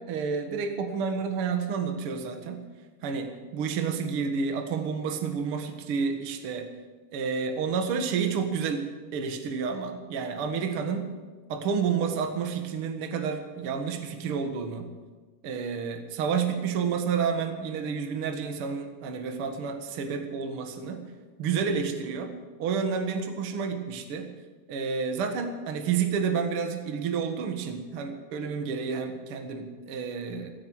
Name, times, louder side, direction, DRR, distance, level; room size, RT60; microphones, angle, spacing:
voice 1, 0.1-2.6 3.0-6.7 7.1-8.9 9.1-11.1 11.5-14.9 15.4-21.1 21.4-22.3 22.6-24.3 24.7-30.5, right 6 dB, 75° right, 5 dB, 1.2 m, -30 dB
15.5 x 15.5 x 6.2 m, 1.3 s
omnidirectional pair, 5.1 m